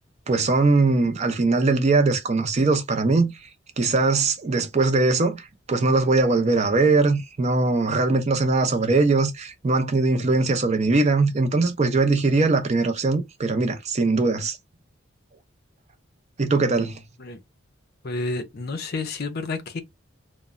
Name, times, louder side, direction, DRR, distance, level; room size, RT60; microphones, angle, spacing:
voice 1, 0.3-3.3 3.8-14.6 16.4-17.0, right 3 dB, 35° right, 0.4 m, -21 dB
voice 2, 18.0-19.8, left 3 dB, 50° left, 0.5 m, -30 dB
3.0 x 2.1 x 2.4 m
head